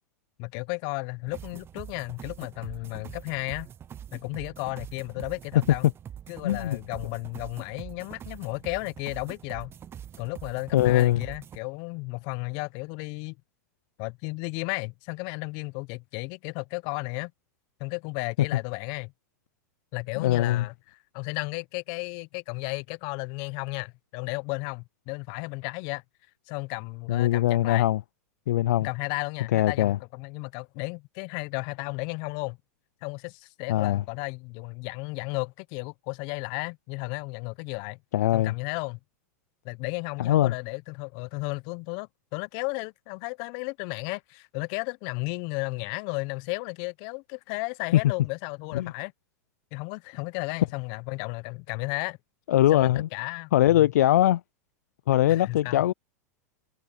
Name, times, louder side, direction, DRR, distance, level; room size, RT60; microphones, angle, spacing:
voice 1, 0.4-3.7 4.1-5.9 6.3-9.7 10.2-13.4 14.0-17.3 17.8-19.1 19.9-26.0 26.5-27.9 28.8-32.6 33.0-38.0 38.3-39.0 39.6-49.1 49.7-52.2 52.7-53.9 55.3-55.8, left 29 dB, 55° left, 0.9 m, -34 dB
sound 1, 1.3-11.6, right 9 dB, 25° right, 0.7 m, -44 dB
voice 2, 6.4-6.8 10.7-11.2 20.2-20.6 27.1-28.0 28.5-28.9 29.5-30.0 33.7-34.0 38.1-38.5 40.2-40.5 47.9-48.0 48.7-48.9 52.5-53.1 53.5-54.4 55.1-55.9, left 13 dB, 75° left, 0.4 m, -21 dB
hypercardioid pair, 100°, 9 cm